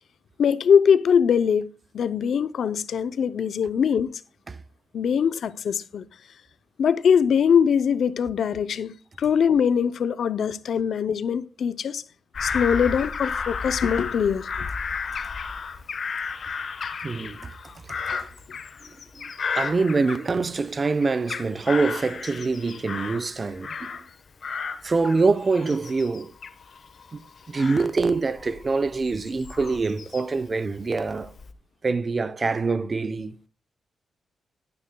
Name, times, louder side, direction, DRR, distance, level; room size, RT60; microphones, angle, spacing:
voice 1, 0.4-1.7 1.9-4.1 4.9-6.0 6.8-12.0 12.4-14.7, left 7 dB, 75° left, 0.6 m, -22 dB
Bird vocalization bird call bird song / Crow, 12.3-20.7 21.0-24.1 24.4-30.4 31.0-31.5, left 5 dB, 55° left, 1.1 m, -33 dB
voice 2, 17.0-17.5 19.5-23.9 24.8-26.3 27.1-27.2 27.5-31.3 31.8-33.3, right 4 dB, 40° right, 0.7 m, -24 dB
16.5 x 9.6 x 2.3 m
cardioid pair, 80°, 0 cm